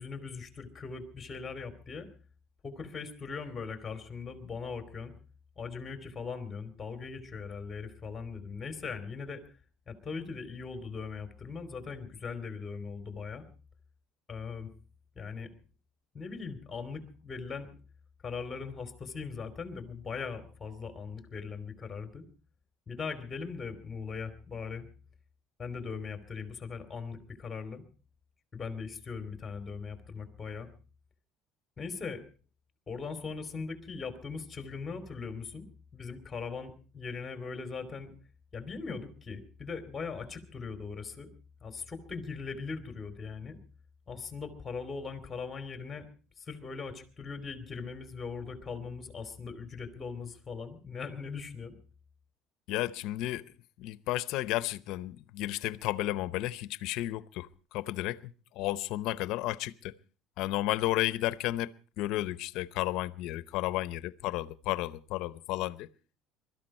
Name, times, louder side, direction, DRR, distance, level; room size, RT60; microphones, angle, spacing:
voice 1, 0.0-2.1 2.6-5.1 5.6-9.4 9.9-13.5 14.3-14.7 15.1-15.5 16.1-17.7 18.2-22.2 22.9-24.9 25.6-27.9 28.5-30.7 31.8-32.2 32.9-35.7 35.9-38.1 38.5-41.3 41.6-43.6 44.1-46.1 46.4-51.7, left 5 dB, 20° left, 3.0 m, -40 dB
voice 2, 52.7-53.4 53.8-58.2 58.6-59.9 60.4-61.7 62.0-65.9, left 16 dB, 65° left, 0.8 m, -32 dB
23.0 x 13.5 x 4.3 m
cardioid pair, 135°, 0 cm